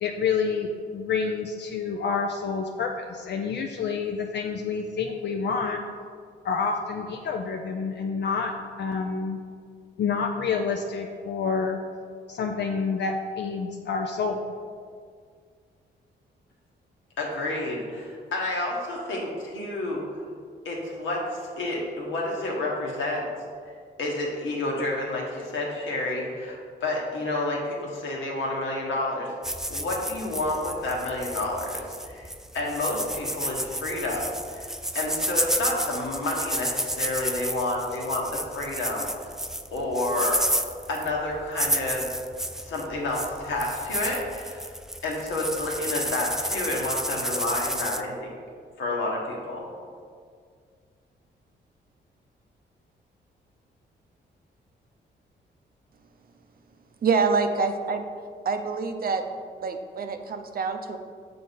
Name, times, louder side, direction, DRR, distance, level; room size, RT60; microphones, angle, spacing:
voice 1, 0.0-5.8 6.4-9.4 10.0-11.8 12.3-14.4, left 5 dB, 60° left, 2 dB, 0.5 m, -28 dB
voice 2, 17.2-20.2 20.6-23.3 24.0-29.3 29.7-39.3 39.7-40.4 40.9-42.1 42.6-44.6 45.0-48.4 48.8-49.7, left 2 dB, 80° left, -2 dB, 1.3 m, -30 dB
sound 1, 29.4-48.0, equal, ahead, 0.3 m, -31 dB
voice 3, 57.0-58.0 58.5-59.2 59.6-61.0, right 4 dB, 50° right, 7 dB, 0.5 m, -26 dB
6.8 x 3.8 x 3.9 m, 2.1 s
cardioid pair, 75°, 19 cm